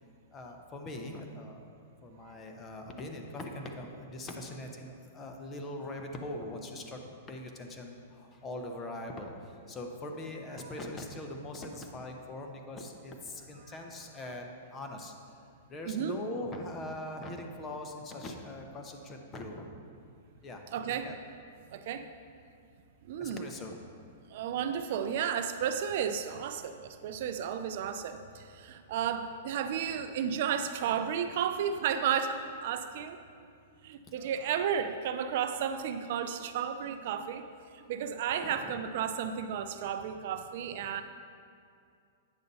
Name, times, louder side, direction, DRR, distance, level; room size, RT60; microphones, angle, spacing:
voice 1, 0.3-1.6 2.0-15.1 15.7-19.7 20.4-21.2 23.2-23.8 34.2-34.6 38.4-38.8 40.7-40.9, left 1 dB, 20° left, 3 dB, 0.8 m, -42 dB
voice 2, 15.9-16.2 20.7-21.1 21.7-22.1 23.1-23.5 24.3-33.2 33.8-37.5 37.7-41.0, right 8 dB, 55° right, 9 dB, 0.4 m, -33 dB
8.8 x 6.6 x 4.1 m, 2.3 s
hypercardioid pair, 150°, 0 cm